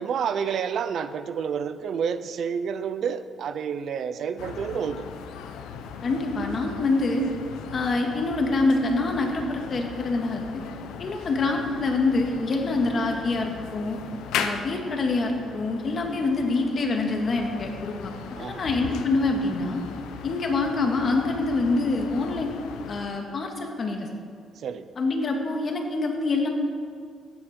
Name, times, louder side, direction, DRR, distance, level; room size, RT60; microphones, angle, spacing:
voice 1, 0.0-5.1 18.4-18.7 24.6-24.9, right 7 dB, 65° right, 12 dB, 0.6 m, -29 dB
sound 1, 4.4-23.1, left 7 dB, 90° left, 0.8 m, -38 dB
voice 2, 6.0-7.3 7.7-10.6 11.0-14.0 14.3-19.8 20.2-22.5 22.9-24.1 25.0-26.5, left 3 dB, 45° left, 2 dB, 2.0 m, -25 dB
16.0 x 9.7 x 4.4 m, 2.1 s
cardioid pair, 90°, 0 cm